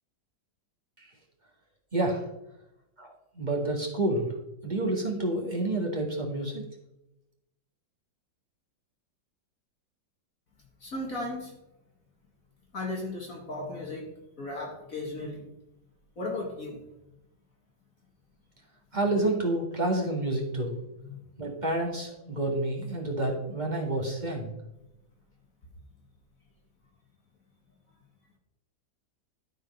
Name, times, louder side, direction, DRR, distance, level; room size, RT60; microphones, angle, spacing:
voice 1, 1.9-2.2 3.0-4.3 4.6-6.6 18.9-20.7 21.4-24.5, right 2 dB, 25° right, -2 dB, 2.0 m, -29 dB
voice 2, 10.8-11.5 12.7-14.1 14.4-15.5 16.2-16.8 21.0-21.2, left 2 dB, 45° left, -1 dB, 2.2 m, -35 dB
12.5 x 5.0 x 5.4 m, 0.90 s
omnidirectional pair, 2.0 m